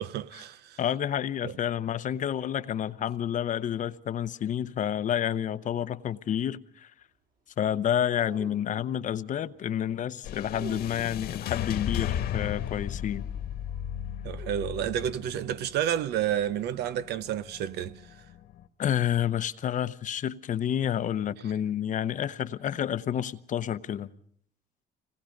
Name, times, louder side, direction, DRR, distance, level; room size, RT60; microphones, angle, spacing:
voice 1, 0.0-0.8 1.4-1.5 14.2-18.0, right 10 dB, 75° right, 0.8 m, -30 dB
voice 2, 0.8-6.9 7.6-13.3 18.8-24.1, left 10 dB, 50° left, 0.8 m, -29 dB
sound 1, 8.1-9.1 10.5-11.3 14.3-15.4, right 4 dB, 60° right, 6.4 m, -47 dB
sound 2, 10.2-18.6, left 10 dB, 70° left, 1.6 m, -35 dB
26.0 x 19.5 x 5.2 m
cardioid pair, 110°, 17 cm